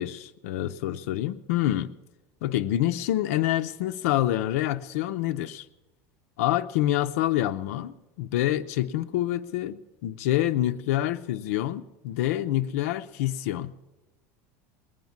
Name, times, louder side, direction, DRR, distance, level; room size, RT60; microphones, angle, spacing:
voice 1, 0.0-1.9 2.4-5.7 6.4-13.7, left 13 dB, 75° left, 0.6 m, -27 dB
20.5 x 9.4 x 7.2 m
cardioid pair, 170°, 8 cm